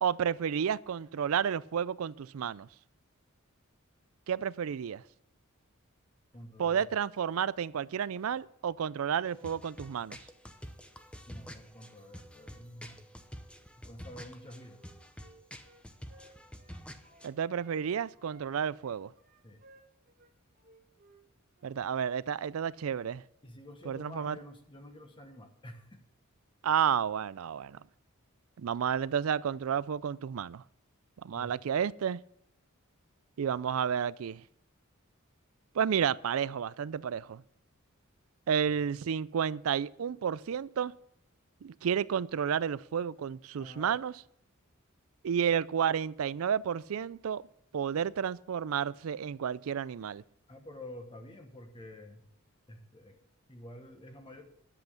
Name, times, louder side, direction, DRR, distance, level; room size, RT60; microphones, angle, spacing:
voice 1, 0.0-2.7 4.3-5.0 6.6-10.2 17.2-19.1 21.6-23.2 23.9-24.4 26.6-27.8 28.6-30.6 31.2-32.2 33.4-34.4 35.7-37.4 38.5-40.9 41.6-44.1 45.2-47.4 47.7-50.2, right 8 dB, 75° right, 0.4 m, -31 dB
voice 2, 6.3-6.9 11.3-13.1 13.8-14.8 19.4-19.6 23.4-26.0 31.3-31.5 38.7-38.8 43.6-44.0 50.5-52.3 52.7-53.2 53.5-54.4, left 1 dB, 25° left, 1.2 m, -49 dB
sound 1, 9.3-17.3, equal, 5° left, 0.8 m, -48 dB
Wind instrument woodwind instrument, 14.4-17.8 18.1-21.2 21.5-21.7, right 2 dB, 45° right, 1.6 m, -61 dB
10.5 x 7.7 x 6.6 m
head